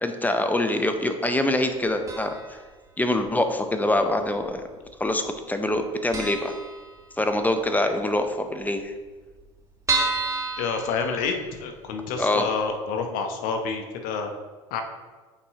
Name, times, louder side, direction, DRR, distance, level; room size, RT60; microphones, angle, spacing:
voice 1, 0.0-2.3 3.0-4.6 5.0-6.5 7.2-8.9 12.2-12.5, left 1 dB, 10° left, 6 dB, 0.7 m, -24 dB
sound 1, 2.1-2.6 2.9-3.0 3.9-4.6 4.9-5.0 5.3-5.4 5.8-5.9 6.1-7.4 7.8-7.9 8.2-8.3 8.5-8.6 9.1-11.7 12.2-12.3 12.6-12.7, right 3 dB, 20° right, 1.2 m, -30 dB
voice 2, 10.6-14.3 14.7-14.8, left 5 dB, 65° left, 5 dB, 0.9 m, -28 dB
8.4 x 4.2 x 3.0 m, 1.3 s
hypercardioid pair, 75°, 15 cm